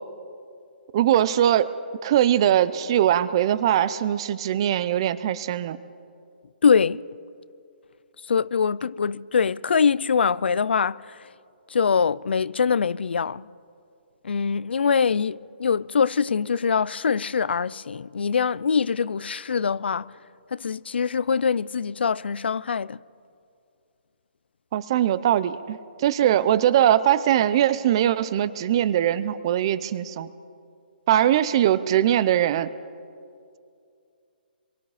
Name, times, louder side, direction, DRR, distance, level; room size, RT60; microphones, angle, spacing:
voice 1, 0.9-1.7 2.0-5.8 24.7-30.3 31.1-32.7, right 11 dB, 30° right, 0.6 m, -21 dB
voice 2, 6.6-7.0 8.3-11.2 11.7-13.5 14.2-20.1 20.5-23.0, left 6 dB, 90° left, 0.5 m, -23 dB
26.5 x 23.0 x 4.9 m
hypercardioid pair, 170°, 6 cm